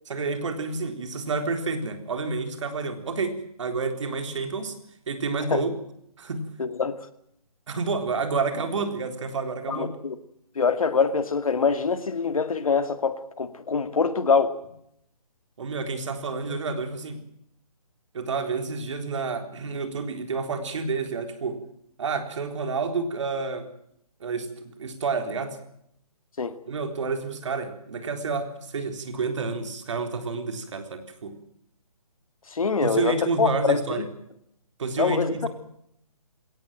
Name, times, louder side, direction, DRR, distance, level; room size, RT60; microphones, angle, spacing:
voice 1, 0.1-4.8 5.1-5.7 6.2-6.5 7.7-9.9 15.6-17.2 18.1-21.6 22.0-23.7 24.2-25.6 26.7-31.4 32.8-34.0 34.8-35.5, right 4 dB, 50° right, 4.0 m, -29 dB
voice 2, 6.6-7.0 9.7-10.2 10.6-14.6 26.4-26.5 32.5-33.8 35.0-35.5, left 5 dB, 65° left, 2.3 m, -24 dB
21.5 x 18.0 x 9.1 m
hypercardioid pair, 155°, 19 cm